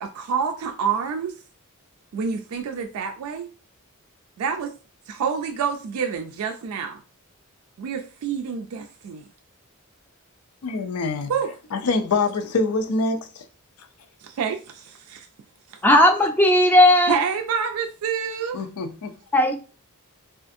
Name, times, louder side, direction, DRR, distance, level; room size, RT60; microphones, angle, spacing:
voice 1, 0.0-1.4 2.1-3.5 4.4-4.7 5.1-7.0 7.8-9.3 11.3-11.5 14.2-15.3 15.7-15.8 17.1-18.6, right 6 dB, 75° right, 0.3 m, -28 dB
voice 2, 10.6-11.3 11.7-13.4 18.5-19.1, left 3 dB, 90° left, 0.5 m, -25 dB
voice 3, 15.8-17.2 19.3-19.5, left 1 dB, 10° left, 0.4 m, -15 dB
2.4 x 2.4 x 2.5 m
head